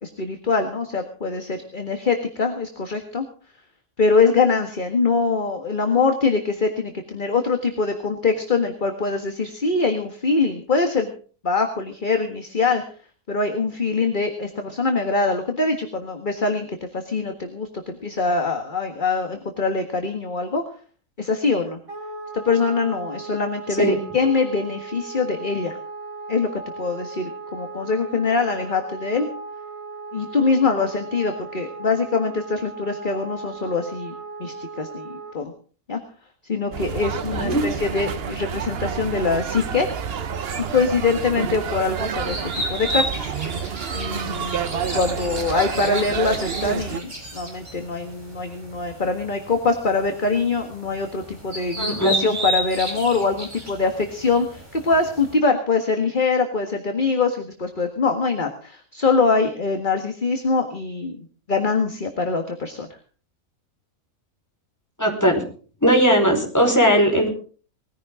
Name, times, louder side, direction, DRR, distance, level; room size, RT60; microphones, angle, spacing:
voice 1, 0.0-3.3 4.0-11.1 11.4-12.8 13.3-20.6 21.2-21.8 22.3-25.8 26.3-29.3 30.1-35.5 35.9-36.0 36.5-39.9 40.6-42.4 42.7-43.3 43.9-62.9, left 4 dB, 35° left, 5 dB, 1.8 m, -23 dB
Wind instrument woodwind instrument, 21.9-35.4, right 3 dB, 75° right, 7.8 m, -37 dB
sound 1, 36.7-47.0, right 7 dB, 50° right, 1.0 m, -29 dB
sound 2, 40.5-55.3, right 1 dB, 30° right, 4.6 m, -33 dB
voice 2, 51.8-52.2 65.0-65.4 65.8-67.3, equal, 10° left, 2 dB, 4.8 m, -18 dB
20.5 x 15.5 x 3.7 m, 0.41 s
omnidirectional pair, 1.4 m